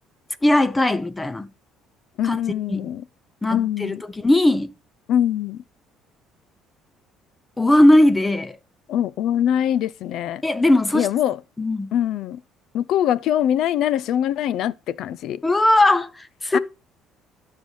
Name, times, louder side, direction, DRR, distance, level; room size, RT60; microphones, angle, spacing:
voice 1, 0.4-1.5 2.2-2.4 2.7-2.9 3.4-4.7 7.6-8.6 10.4-11.1 11.6-11.9 15.4-16.6, left 1 dB, 10° left, 0.5 m, -18 dB
voice 2, 2.2-3.0 3.5-4.0 5.1-5.6 8.9-10.4 10.9-11.4 11.9-12.4 12.7-15.4 16.5-16.6, left 10 dB, 65° left, 0.3 m, -23 dB
14.5 x 5.6 x 3.2 m
cardioid pair, 125°, 0 cm